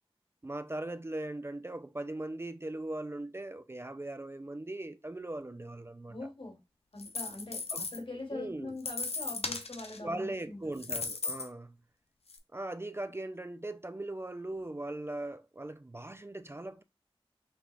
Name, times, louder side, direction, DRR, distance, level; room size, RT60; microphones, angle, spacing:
voice 1, 0.4-6.2 7.7-7.9 8.3-8.8 10.0-11.8 12.5-16.8, right 1 dB, 25° right, 0.4 m, -39 dB
voice 2, 6.1-6.6 6.9-10.6, left 2 dB, 60° left, 2.1 m, -43 dB
sound 1, 7.0-8.0 8.8-10.0 10.7-11.5 12.3-12.4, left 3 dB, 85° left, 0.6 m, -36 dB
5.8 x 2.4 x 3.3 m
wide cardioid pair, 40°, 10 cm